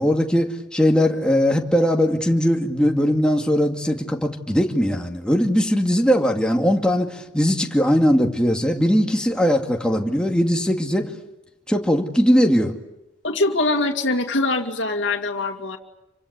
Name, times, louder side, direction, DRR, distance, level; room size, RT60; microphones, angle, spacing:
voice 1, 0.0-11.1 11.7-12.8, equal, 5° left, 2 dB, 2.3 m, -20 dB
voice 2, 13.2-15.8, left 2 dB, 80° left, 2 dB, 2.3 m, -23 dB
28.0 x 25.5 x 8.4 m, 0.90 s
head